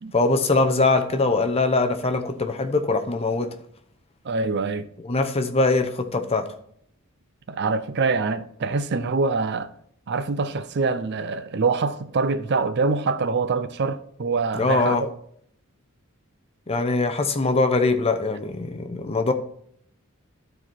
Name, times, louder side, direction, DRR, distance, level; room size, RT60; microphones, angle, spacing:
voice 1, 0.1-3.5 5.1-6.5 14.5-15.0 16.7-19.3, left 3 dB, 25° left, 0.7 m, -22 dB
voice 2, 4.2-4.9 7.5-9.7 10.1-15.1, right 4 dB, 50° right, 0.5 m, -25 dB
12.0 x 4.6 x 4.3 m
head